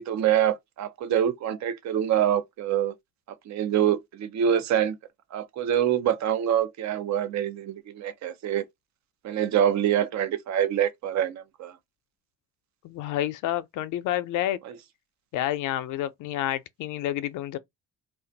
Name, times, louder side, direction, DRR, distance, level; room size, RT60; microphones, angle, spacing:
voice 1, 0.0-2.9 3.5-5.0 5.3-8.7 9.2-11.7 14.6-14.8, right 10 dB, 65° right, 0.6 m, -25 dB
voice 2, 12.8-14.6 15.3-17.6, left 13 dB, 80° left, 0.5 m, -29 dB
2.5 x 2.3 x 3.9 m
cardioid pair, 90°, 30 cm